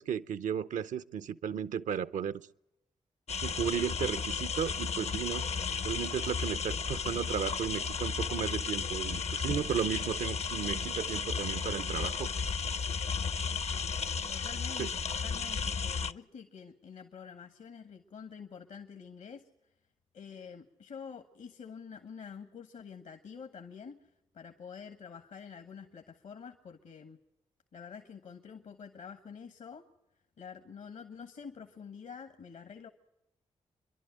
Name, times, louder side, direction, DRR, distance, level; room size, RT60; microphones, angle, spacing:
voice 1, 0.0-2.4 3.4-5.5 5.8-12.3 14.8-14.9, right 8 dB, 70° right, 0.7 m, -34 dB
sound 1, 3.3-16.1, left 6 dB, 55° left, 0.7 m, -34 dB
voice 2, 14.3-19.5 20.1-27.2 27.7-29.8 30.4-32.9, left 6 dB, 75° left, 1.5 m, -47 dB
27.5 x 11.5 x 9.1 m
supercardioid pair, 40°, 13 cm